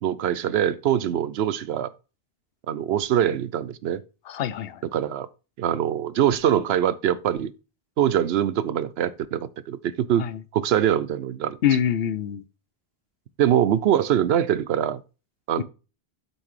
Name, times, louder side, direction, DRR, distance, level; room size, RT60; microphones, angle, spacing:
voice 1, 0.0-1.9 2.7-4.0 4.8-5.3 5.6-7.5 8.0-10.3 10.5-11.6 13.4-15.0 15.5-15.6, right 10 dB, 85° right, 0.9 m, -23 dB
voice 2, 4.3-4.8 10.2-10.3 11.6-12.4 15.6-15.7, left 9 dB, 75° left, 0.8 m, -24 dB
8.1 x 5.8 x 3.2 m
omnidirectional pair, 1.0 m